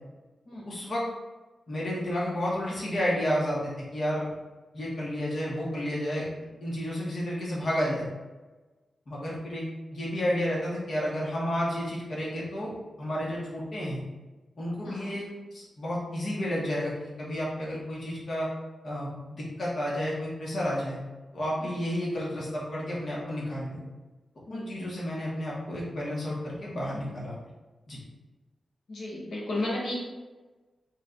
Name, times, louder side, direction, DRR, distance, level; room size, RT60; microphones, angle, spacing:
voice 1, 0.6-1.0 1.7-4.3 4.7-6.3 6.6-8.1 9.1-9.7 9.9-14.0 14.6-15.2 15.5-18.5 18.8-21.0 21.3-23.8 24.5-27.3 27.9-28.0, equal, 45° left, -6 dB, 1.0 m, -31 dB
voice 2, 14.8-15.2 21.6-21.8 24.5-24.9 28.9-29.9, left 2 dB, 85° left, -4 dB, 1.0 m, -34 dB
4.1 x 2.2 x 3.8 m, 1.2 s
wide cardioid pair, 165°, 0 cm